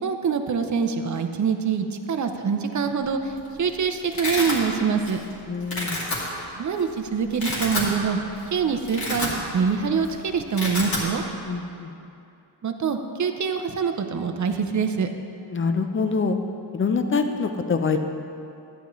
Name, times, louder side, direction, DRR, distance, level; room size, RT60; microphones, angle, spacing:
voice 1, 0.0-3.3 3.6-5.2 6.6-8.2 8.5-11.2 12.6-15.1, right 6 dB, 40° right, 7 dB, 0.6 m, -25 dB
Domestic sounds home sounds, 3.1-3.5 3.7-4.6 5.1-5.3 5.6-6.2 6.8-6.9 7.3-7.9 8.3-8.4 8.8-9.7 10.0-10.1 10.4-11.1, left 1 dB, 50° left, 2.3 m, -29 dB
voice 2, 5.5-6.0 11.5-11.9 15.5-16.4 16.7-18.0, left 4 dB, 30° left, 7 dB, 0.5 m, -25 dB
13.5 x 10.0 x 3.1 m, 2.6 s
wide cardioid pair, 170°, 45 cm